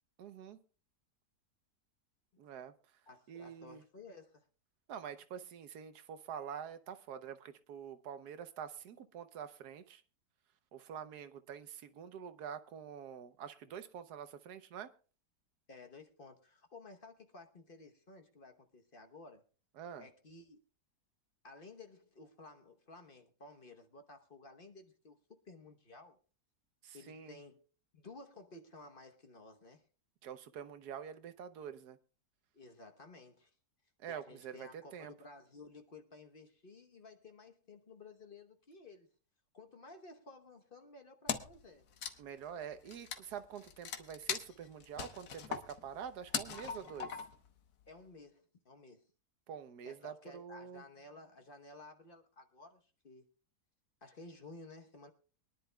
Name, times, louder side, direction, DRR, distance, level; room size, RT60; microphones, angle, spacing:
voice 1, 0.2-0.6 2.4-2.7 3.3-3.8 4.9-10.0 10.7-14.9 19.8-20.1 26.8-27.4 30.2-32.0 34.0-35.1 42.2-47.2 49.5-50.8, right 8 dB, 80° right, 1.4 m, -46 dB
voice 2, 3.1-4.5 15.7-19.4 20.0-20.6 21.4-25.2 25.4-26.2 26.9-27.6 27.9-29.8 32.5-33.5 34.1-39.1 39.5-41.9 47.9-49.1 49.8-53.2 54.0-55.1, left 3 dB, 40° left, 1.0 m, -55 dB
Wood, 41.3-41.6 41.9-47.5, left 7 dB, 70° left, 1.5 m, -40 dB
23.5 x 10.5 x 2.2 m
omnidirectional pair, 1.7 m